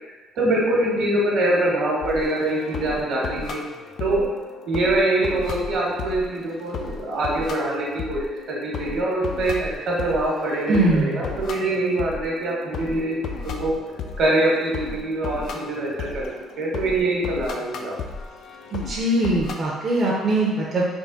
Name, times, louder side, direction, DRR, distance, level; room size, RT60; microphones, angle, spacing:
voice 1, 0.3-3.6 4.0-4.2 4.7-13.2 13.4-13.7 14.2-16.3 16.6-17.9, right 1 dB, 65° right, -3 dB, 1.2 m, -24 dB
sound 1, 2.0-19.5, left 5 dB, 65° left, 0.4 m, -35 dB
voice 2, 10.7-11.2 18.7-20.9, right 2 dB, 40° right, -5 dB, 0.6 m, -21 dB
3.6 x 2.2 x 3.8 m, 1.3 s
supercardioid pair, 80°, 0 cm